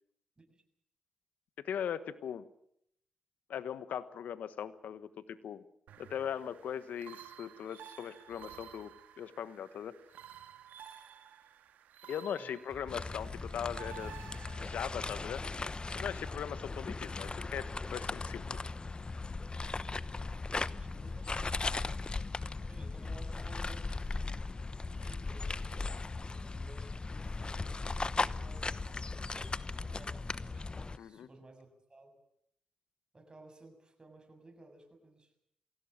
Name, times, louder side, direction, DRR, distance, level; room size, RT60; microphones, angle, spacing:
voice 1, 1.6-2.5 3.5-5.6 6.0-9.9 12.1-14.1 14.6-15.4 15.9-18.7 31.0-31.3, left 8 dB, 80° left, 14 dB, 1.3 m, -40 dB
sound 1, 5.9-14.9, right 9 dB, 85° right, 1.7 m, -53 dB
sound 2, 12.7-18.1, left 1 dB, 15° left, 5.1 m, -56 dB
sound 3, 12.9-31.0, left 3 dB, 35° left, 1.0 m, -38 dB
voice 2, 20.7-22.0 22.7-24.3 24.8-28.7 29.8-32.2 33.1-35.3, right 2 dB, 30° right, 6 dB, 7.1 m, -57 dB
23.5 x 17.0 x 8.8 m, 0.72 s
supercardioid pair, 45°, 3 cm